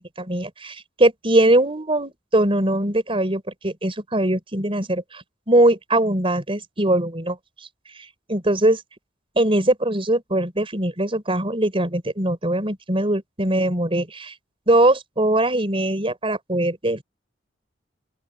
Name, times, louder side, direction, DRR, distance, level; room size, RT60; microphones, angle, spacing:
voice 1, 0.2-7.3 8.3-8.8 9.3-14.3 14.7-17.0, right 1 dB, 30° right, 4.9 m, -21 dB
open air
head